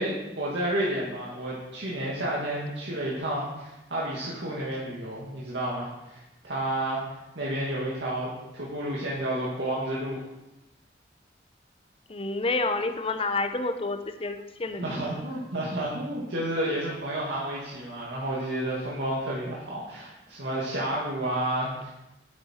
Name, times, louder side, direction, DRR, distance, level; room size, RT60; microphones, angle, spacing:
voice 1, 0.0-7.0 7.4-10.2 14.8-21.9, right 1 dB, 80° right, -6 dB, 1.8 m, -31 dB
voice 2, 12.1-15.0, left 3 dB, 35° left, 7 dB, 0.7 m, -29 dB
8.5 x 8.0 x 4.4 m, 0.98 s
head